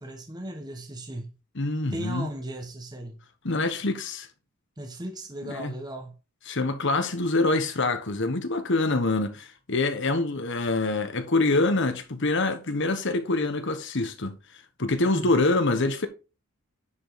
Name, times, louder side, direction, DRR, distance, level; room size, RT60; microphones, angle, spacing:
voice 1, 0.0-1.3 1.9-3.2 4.8-6.1 15.1-15.4, right 1 dB, 20° right, 1.0 m, -37 dB
voice 2, 1.6-2.3 3.4-4.3 5.4-5.7 6.5-14.3 14.8-16.1, left 2 dB, 55° left, 1.1 m, -25 dB
9.8 x 5.2 x 4.1 m
head